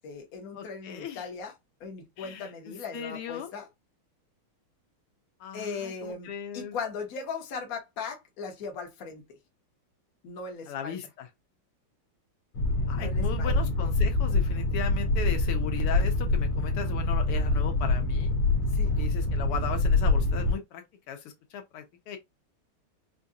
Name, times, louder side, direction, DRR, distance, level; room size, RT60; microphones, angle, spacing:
voice 1, 0.0-1.5 1.8-3.7 5.5-9.3 10.2-11.0 12.9-13.6 18.7-18.9, left 5 dB, 50° left, 1.3 m, -38 dB
voice 2, 0.5-1.3 2.2-3.5 5.4-6.8 10.7-11.3 12.9-18.3 19.0-22.2, left 8 dB, 90° left, 1.7 m, -37 dB
Boat Water vehicle, 12.5-20.5, left 2 dB, 70° left, 1.9 m, -25 dB
4.8 x 2.3 x 2.7 m
omnidirectional pair, 2.4 m